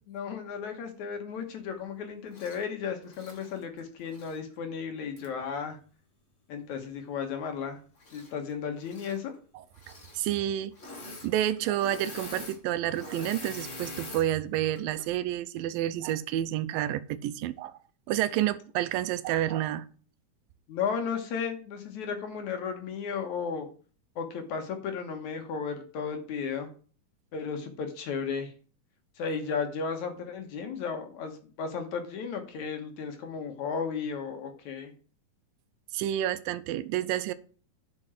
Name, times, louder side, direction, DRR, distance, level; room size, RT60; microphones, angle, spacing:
voice 1, 0.1-5.8 6.5-7.8 8.1-9.3 20.7-23.7 24.2-26.7 27.3-28.5 29.2-34.9, left 6 dB, 65° left, 6 dB, 2.5 m, -34 dB
Engine / Mechanisms, 2.3-2.6 3.0-4.4 5.2-5.3 8.0-8.5 8.8-9.2 9.7-10.2 10.7-11.3 11.6-14.3 14.8-15.0, left 2 dB, 35° left, 1.1 m, -44 dB
voice 2, 9.9-10.7 11.2-17.8 18.1-19.9 35.9-37.3, right 12 dB, 80° right, 13 dB, 2.3 m, -29 dB
9.8 x 5.3 x 6.0 m, 0.40 s
omnidirectional pair, 4.1 m